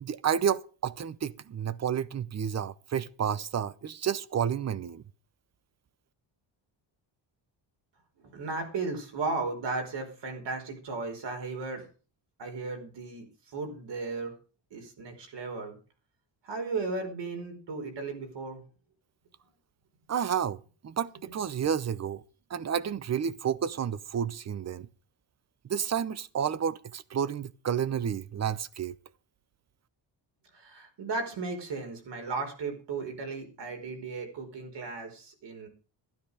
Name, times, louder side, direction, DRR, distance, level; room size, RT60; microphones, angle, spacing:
voice 1, 0.0-5.0 20.1-22.2 22.5-24.9 25.7-29.0, right 8 dB, 35° right, 0.7 m, -30 dB
voice 2, 8.2-11.8 12.4-13.3 13.5-14.3 14.7-15.8 16.4-18.6 21.3-21.4 30.5-35.7, right 3 dB, 65° right, 5.0 m, -35 dB
12.5 x 12.5 x 5.0 m
wide cardioid pair, 170°, 45 cm